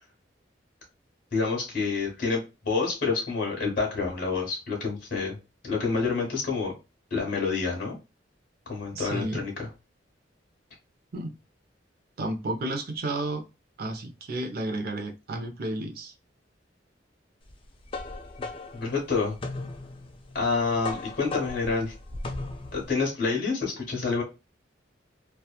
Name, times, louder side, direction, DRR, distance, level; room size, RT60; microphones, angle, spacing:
voice 1, 1.3-5.4 5.6-6.7 7.1-8.0 8.7-9.5 18.7-19.4 20.3-21.9 22.7-24.2, left 4 dB, 50° left, -1 dB, 1.0 m, -28 dB
voice 2, 8.9-9.4 11.1-11.3 12.2-13.4 13.8-16.1, right 2 dB, 55° right, 5 dB, 0.5 m, -32 dB
sound 1, 17.5-22.9, left 3 dB, 30° left, 0.4 m, -37 dB
2.8 x 2.3 x 2.3 m, 0.27 s
head